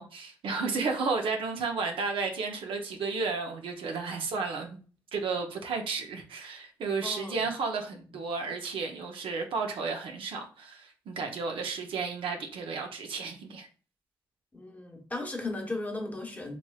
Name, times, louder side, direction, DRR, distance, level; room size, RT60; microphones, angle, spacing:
voice 1, 0.0-4.8 5.1-13.7, right 4 dB, 75° right, 0.7 m, -33 dB
voice 2, 7.0-7.4 14.5-16.6, left 2 dB, 20° left, 1.0 m, -36 dB
3.0 x 2.9 x 2.3 m
supercardioid pair, 55°, 9 cm